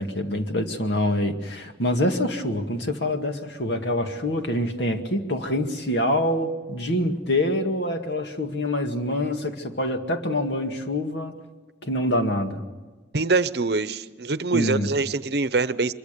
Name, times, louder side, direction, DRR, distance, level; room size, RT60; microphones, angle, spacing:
voice 1, 0.0-11.3 11.8-12.6 14.5-14.9, left 1 dB, 70° left, 5 dB, 2.1 m, -25 dB
voice 2, 13.1-15.9, right 3 dB, 60° right, 14 dB, 0.8 m, -24 dB
24.5 x 23.0 x 6.8 m, 1.3 s
head